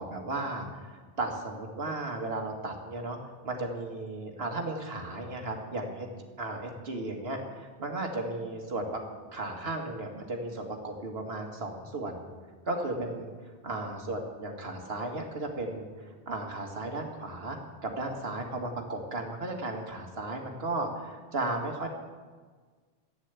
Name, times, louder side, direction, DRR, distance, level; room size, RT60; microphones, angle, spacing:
voice 1, 0.0-3.2 3.4-6.1 6.4-9.0 9.3-12.3 12.7-21.9, right 2 dB, 70° right, 3 dB, 2.0 m, -35 dB
11.0 x 9.3 x 8.2 m, 1.5 s
omnidirectional pair, 1.1 m